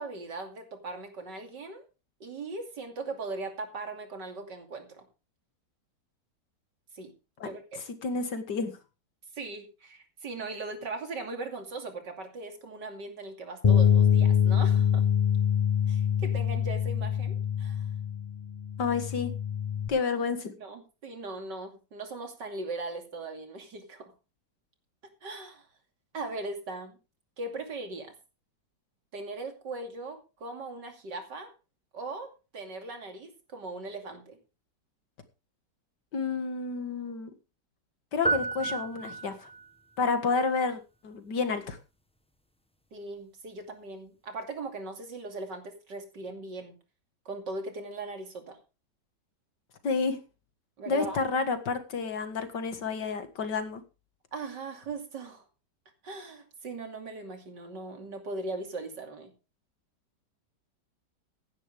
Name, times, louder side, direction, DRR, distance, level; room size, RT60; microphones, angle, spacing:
voice 1, 0.0-1.9 2.2-5.1 6.9-7.1 7.4-7.8 9.3-15.0 15.9-17.9 20.6-24.1 25.2-25.7 26.1-27.0 27.4-28.1 29.1-31.5 31.9-34.4 42.9-46.8 47.2-48.6 50.8-51.2 54.3-55.4 56.0-59.3, right 3 dB, 80° right, 5 dB, 3.3 m, -39 dB
voice 2, 8.0-8.8 18.8-19.3 19.9-20.5 36.1-37.3 38.1-39.5 40.0-41.8 49.8-50.2 50.9-53.8, left 4 dB, 75° left, 8 dB, 2.5 m, -30 dB
Bass guitar, 13.6-19.9, left 8 dB, 35° left, 0.7 m, -25 dB
sound 1, 38.2-39.7, right 3 dB, 5° left, 0.8 m, -31 dB
16.0 x 11.0 x 3.5 m, 0.30 s
omnidirectional pair, 1.9 m